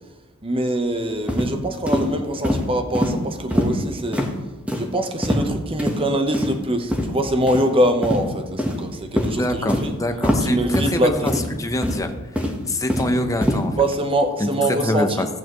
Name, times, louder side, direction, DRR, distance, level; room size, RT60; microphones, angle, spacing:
voice 1, 0.4-4.3 4.8-10.0 10.4-11.3 13.8-15.2, right 1 dB, 25° right, 6 dB, 1.0 m, -23 dB
sound 1, 1.3-1.5 1.9-2.0 2.4-2.6 2.9-3.1 3.5-3.7 4.1-4.3 4.7-4.8 5.2-5.5 5.8-5.9 6.3-6.5 6.9-7.0 7.5-7.6 8.0-8.2 8.6-8.8 9.2-9.3 9.7-9.8 10.2-10.4 10.7-10.9 11.3-11.5 11.8-12.0 12.4-13.1 13.4-13.6, equal, 5° right, 1.2 m, -22 dB
voice 2, 9.4-11.3 11.6-12.1 12.7-13.8 14.4-15.3, left 1 dB, 15° left, 5 dB, 0.8 m, -24 dB
15.0 x 8.4 x 3.1 m, 1.2 s
head